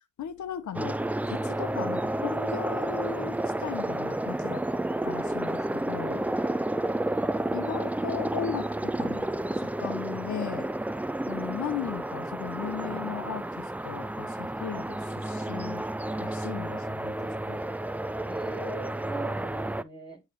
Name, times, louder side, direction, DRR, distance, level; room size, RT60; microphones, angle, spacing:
voice 1, 0.2-1.0 1.3-4.6 5.0-6.2 7.5-9.3 9.6-10.7 11.3-15.8 16.2-17.1 17.5-17.6, left 8 dB, 60° left, 1.0 m, -37 dB
sound 1, 0.7-19.8, right 1 dB, 5° right, 0.4 m, -31 dB
voice 2, 18.2-20.2, right 1 dB, 15° left, 5.7 m, -44 dB
10.0 x 3.4 x 4.1 m
supercardioid pair, 60°, 33 cm